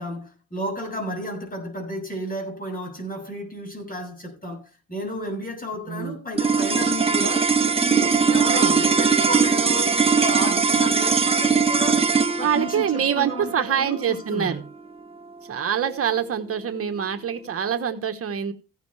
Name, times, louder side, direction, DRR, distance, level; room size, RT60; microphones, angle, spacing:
voice 1, 0.0-7.5 7.8-14.6, equal, 30° left, 6.7 m, -33 dB
sound 1, 6.4-16.8, right 5 dB, 20° right, 1.1 m, -21 dB
voice 2, 8.3-8.8 12.4-14.6 15.5-18.5, right 8 dB, 50° right, 1.3 m, -25 dB
15.5 x 10.5 x 3.3 m
cardioid pair, 90°, 30 cm